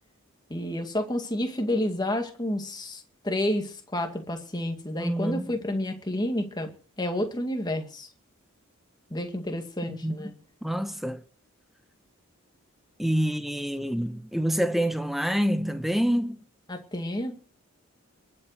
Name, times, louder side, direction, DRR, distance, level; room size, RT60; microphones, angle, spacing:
voice 1, 0.5-6.7 7.0-8.1 9.1-10.3 16.7-17.3, left 1 dB, 20° left, 2.0 m, -30 dB
voice 2, 5.0-5.5 9.9-10.1 10.6-11.2 13.0-16.4, equal, ahead, 0.9 m, -27 dB
21.5 x 7.8 x 6.5 m
head